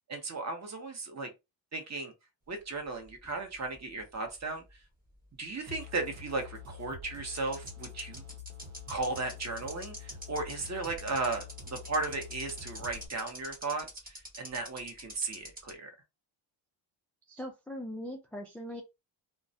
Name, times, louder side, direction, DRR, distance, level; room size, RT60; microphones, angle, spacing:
voice 1, 0.1-1.3 1.7-2.1 2.5-4.6 5.4-8.2 8.9-15.9, right 3 dB, 35° right, 0.7 m, -36 dB
sound 1, 2.8-4.4 4.7-4.8 6.6-6.7 7.3-15.7, right 1 dB, 20° right, 1.1 m, -45 dB
sound 2, 5.7-13.1, left 6 dB, 70° right, 1.1 m, -47 dB
voice 2, 17.3-18.8, equal, 5° left, 0.3 m, -40 dB
2.2 x 2.1 x 2.6 m
cardioid pair, 95°, 48 cm